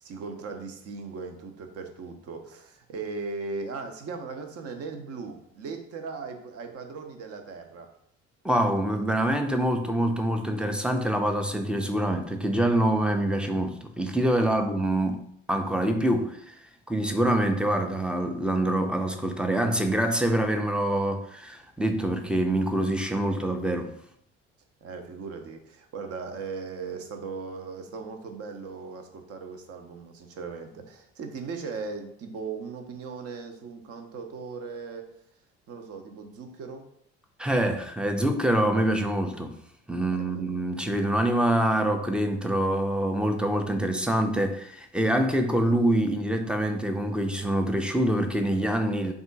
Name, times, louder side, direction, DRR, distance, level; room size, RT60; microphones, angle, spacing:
voice 1, 0.0-7.9 14.4-14.7 24.8-35.1 35.7-36.9 40.0-40.4, right 4 dB, 45° right, 0.7 m, -38 dB
voice 2, 8.4-16.6 16.9-24.0 37.4-39.5 39.9-49.1, right 1 dB, 5° right, 0.5 m, -25 dB
3.5 x 2.5 x 3.9 m
figure-of-eight pair, 55°, 33 cm